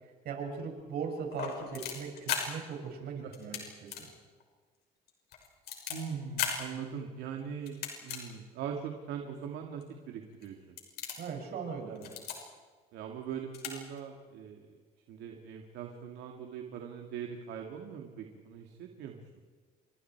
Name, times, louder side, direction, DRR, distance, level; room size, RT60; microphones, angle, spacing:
voice 1, 0.0-4.1 11.2-12.1, right 6 dB, 65° right, 2 dB, 6.9 m, -39 dB
sound 1, 1.3-2.4 3.3-3.6 3.9-4.0 4.4-4.5 5.1-6.0 6.4-6.5 7.7-8.2 8.8-8.9 9.8-9.9 10.3-10.5 10.8-11.3 12.0-12.4 13.2-13.3 13.5-13.7 14.0-14.1, left 8 dB, 70° left, 6.1 m, -36 dB
voice 2, 3.2-3.6 5.9-10.8 12.9-14.7 15.1-19.2, right 7 dB, 85° right, 2 dB, 2.4 m, -41 dB
30.0 x 25.5 x 4.7 m, 1.5 s
cardioid pair, 110°, 17 cm